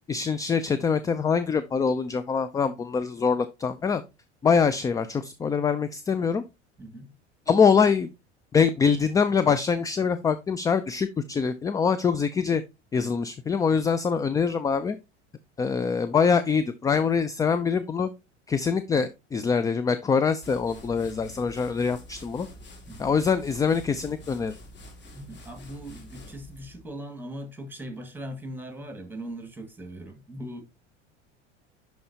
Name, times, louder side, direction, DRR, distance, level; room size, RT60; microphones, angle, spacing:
voice 1, 0.1-4.0 4.4-6.4 7.5-8.1 8.5-12.6 12.9-15.0 15.6-18.1 18.5-22.5 23.0-24.5, left 6 dB, 10° left, 0.3 m, -24 dB
voice 2, 6.8-7.1 22.9-23.1 25.1-30.6, right 1 dB, 5° right, 2.0 m, -39 dB
sound 1, 20.4-26.9, left 1 dB, 30° left, 2.3 m, -47 dB
11.0 x 4.5 x 2.8 m
figure-of-eight pair, 75°, 36 cm